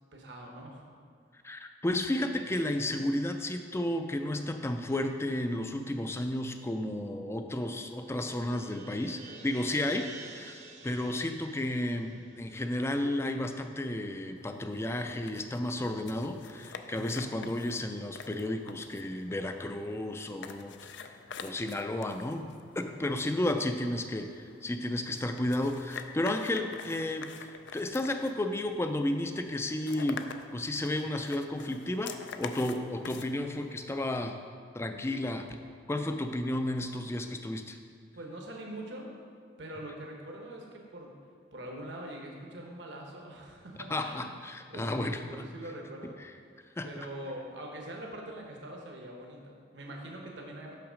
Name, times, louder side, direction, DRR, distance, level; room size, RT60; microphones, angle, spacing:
voice 1, 0.1-0.9 22.8-23.1 38.2-39.1 39.6-41.2 41.5-44.3 44.7-46.2 46.8-50.8, right 1 dB, 70° right, 0 dB, 1.1 m, -43 dB
voice 2, 1.4-21.1 21.4-22.4 22.7-30.3 30.5-34.4 34.7-35.6 35.9-37.8 43.9-45.4 46.2-46.3 46.8-46.9, left 1 dB, 15° left, 6 dB, 0.4 m, -32 dB
sound 1, 7.1-13.6, right 3 dB, 35° right, 0.7 m, -51 dB
sound 2, 14.4-34.2, left 6 dB, 75° left, 0.4 m, -47 dB
6.3 x 5.8 x 5.1 m, 2.1 s
head